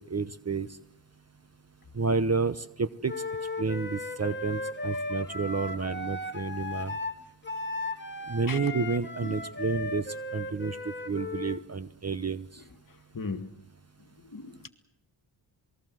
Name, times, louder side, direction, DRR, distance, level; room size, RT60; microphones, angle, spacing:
voice 1, 0.1-0.7 1.9-3.1 3.6-6.9 8.3-10.0 10.3-12.4, right 4 dB, 30° right, 1.0 m, -30 dB
Wind instrument woodwind instrument, 3.1-11.6, left 2 dB, 20° left, 1.9 m, -36 dB
voice 2, 13.1-13.5 14.3-14.7, left 4 dB, 40° left, 2.1 m, -36 dB
27.5 x 20.5 x 7.8 m
cardioid pair, 80°, 49 cm